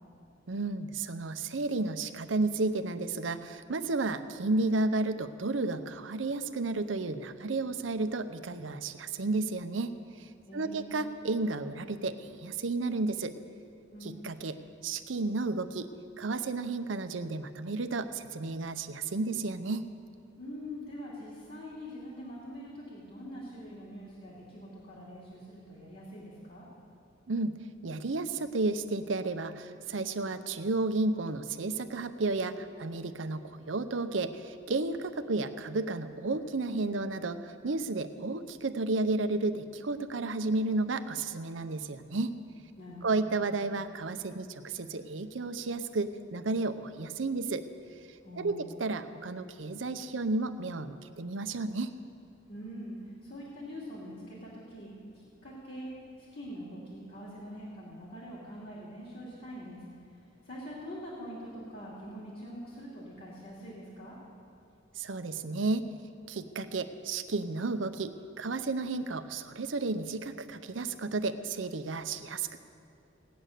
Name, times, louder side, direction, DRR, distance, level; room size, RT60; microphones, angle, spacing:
voice 1, 0.5-13.3 14.0-14.6 14.8-15.9 16.2-19.9 27.3-27.6 27.8-42.3 43.0-47.7 48.4-51.9 65.0-65.9 66.3-72.6, right 3 dB, 85° right, 9 dB, 0.7 m, -32 dB
voice 2, 10.5-11.0 13.9-14.2 20.4-26.7 42.8-43.3 48.2-48.8 52.5-55.9 56.2-59.8 60.1-64.2, equal, 55° left, -5 dB, 2.7 m, -44 dB
17.5 x 9.2 x 6.6 m, 2.7 s
head